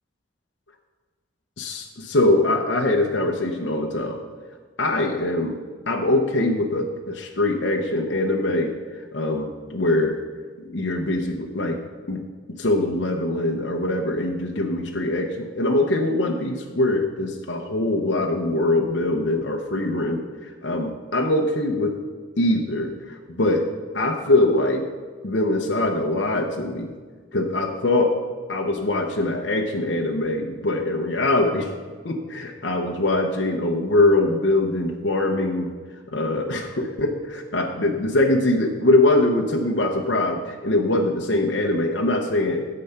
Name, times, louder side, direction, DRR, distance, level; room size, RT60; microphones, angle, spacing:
voice 1, 1.6-4.2 4.8-5.5 5.9-10.2 10.6-11.8 12.1-12.3 12.6-22.0 22.4-23.6 23.9-24.9 25.2-26.9 27.3-28.1 28.5-31.7 32.0-35.7 36.1-42.7, left 2 dB, 65° left, 1 dB, 0.9 m, -23 dB
10.0 x 7.7 x 5.7 m, 1.5 s
head